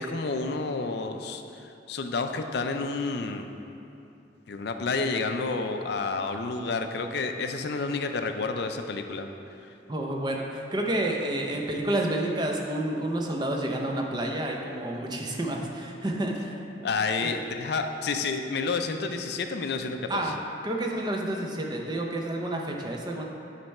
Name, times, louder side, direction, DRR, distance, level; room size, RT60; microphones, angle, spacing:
voice 1, 0.0-3.5 4.5-9.3 16.8-20.3, left 4 dB, 60° left, 6 dB, 0.4 m, -30 dB
voice 2, 9.9-16.6 17.2-17.4 20.1-20.4 20.6-23.3, right 1 dB, 25° right, 0 dB, 0.6 m, -29 dB
8.8 x 3.3 x 5.4 m, 2.7 s
head